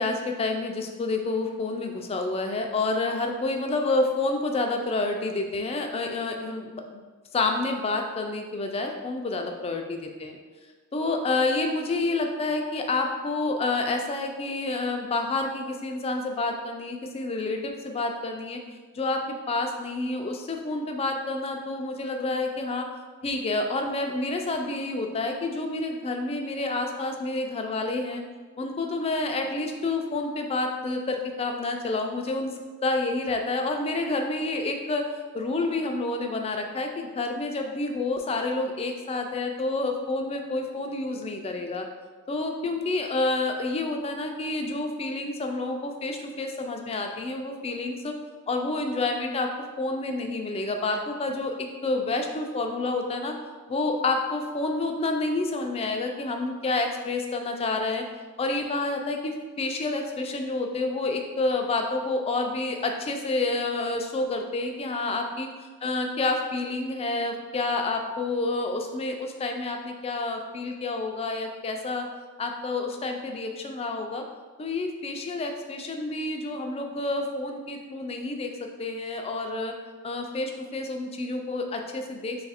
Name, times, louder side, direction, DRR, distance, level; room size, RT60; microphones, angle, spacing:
voice 1, 0.0-7.0 7.3-10.4 10.9-18.6 18.9-22.9 23.2-28.2 28.6-32.5 32.8-35.1 35.3-41.9 42.3-48.1 48.5-49.5 49.8-51.5 51.8-53.3 53.7-58.0 58.4-65.5 65.8-72.1 72.4-74.2 74.6-78.5 78.8-79.7 80.0-82.4, left 2 dB, 25° left, 4 dB, 0.3 m, -29 dB
3.2 x 2.4 x 4.1 m, 1.4 s
head